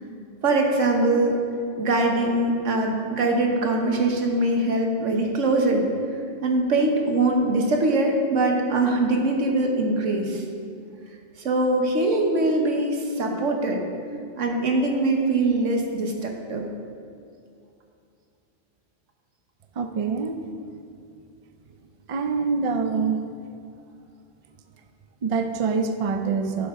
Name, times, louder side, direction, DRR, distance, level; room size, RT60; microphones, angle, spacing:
voice 1, 0.4-1.4 1.8-5.9 6.4-10.4 11.4-13.8 14.4-16.7, right 2 dB, 75° right, 2 dB, 1.4 m, -22 dB
voice 2, 19.8-20.4 22.1-23.3 25.2-26.7, right 5 dB, 55° right, 7 dB, 0.4 m, -25 dB
11.0 x 6.9 x 3.6 m, 2.5 s
omnidirectional pair, 1.3 m